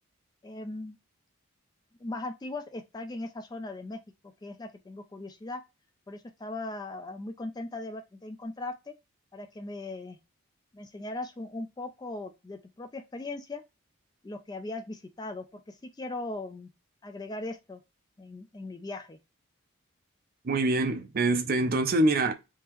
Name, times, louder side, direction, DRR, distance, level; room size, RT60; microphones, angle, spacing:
voice 1, 0.4-1.0 2.0-4.0 4.4-5.6 6.1-8.9 9.3-10.2 10.7-13.6 14.2-16.7 17.0-17.8 18.2-19.2, left 2 dB, 20° left, 0.3 m, -39 dB
voice 2, 20.4-22.3, right 2 dB, 45° right, 0.5 m, -25 dB
3.6 x 2.8 x 2.9 m
head